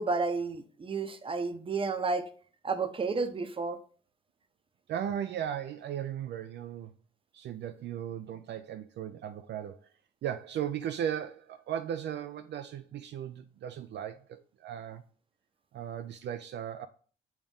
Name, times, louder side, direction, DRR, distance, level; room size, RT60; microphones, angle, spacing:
voice 1, 0.0-2.3 2.6-3.8, right 4 dB, 25° right, 0.8 m, -31 dB
voice 2, 4.9-6.9 7.3-9.9 10.2-15.0 15.7-16.9, right 9 dB, 60° right, 0.4 m, -36 dB
7.1 x 2.5 x 5.3 m
cardioid pair, 90°, 20 cm